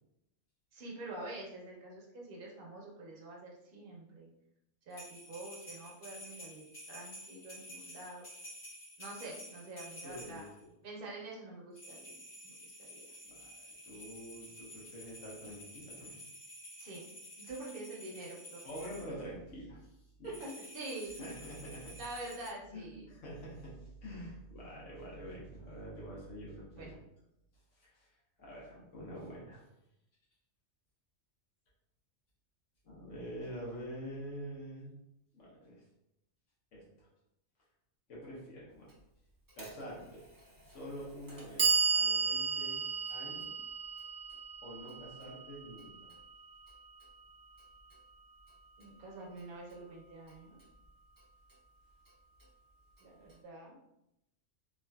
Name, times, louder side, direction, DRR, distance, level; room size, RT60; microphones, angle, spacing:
voice 1, 0.7-4.3 4.9-8.2 9.0-10.4 10.8-12.1 12.4-12.5 12.8-13.1 16.8-18.9 20.2-21.2 22.0-23.0 26.7-27.0 48.8-50.6 53.0-53.8, right 2 dB, 55° right, -2 dB, 0.9 m, -46 dB
sound 1, 4.9-10.6 11.7-19.1 20.2-22.5, equal, 60° left, 1.7 m, -51 dB
voice 2, 10.0-10.4 13.2-13.5 13.8-16.1 18.6-20.3 21.2-21.9 22.7-26.9 27.7-28.1 28.4-29.6 32.8-34.9 35.3-35.8 36.7-37.1 38.1-38.9 39.5-40.2 40.6-42.8 43.1-43.5 44.6-46.1, equal, 90° left, -5 dB, 1.4 m, -46 dB
Clock, 39.6-39.7 40.7-40.8 41.3-47.3, right 5 dB, 30° right, 0.4 m, -34 dB
3.5 x 2.5 x 2.2 m, 0.84 s
omnidirectional pair, 1.2 m